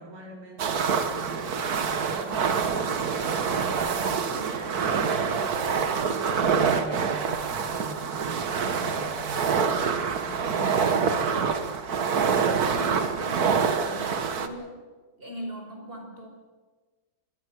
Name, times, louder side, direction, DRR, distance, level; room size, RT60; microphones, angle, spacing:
voice 1, 0.0-3.0 3.3-5.9 6.4-11.6, right 1 dB, 75° right, 1 dB, 5.3 m, -43 dB
sound 1, 0.6-14.5, right 6 dB, 50° right, 1.6 m, -26 dB
voice 2, 12.3-14.8 15.2-16.3, equal, 25° right, 2 dB, 5.6 m, -41 dB
24.5 x 21.5 x 6.5 m, 1.4 s
omnidirectional pair, 2.3 m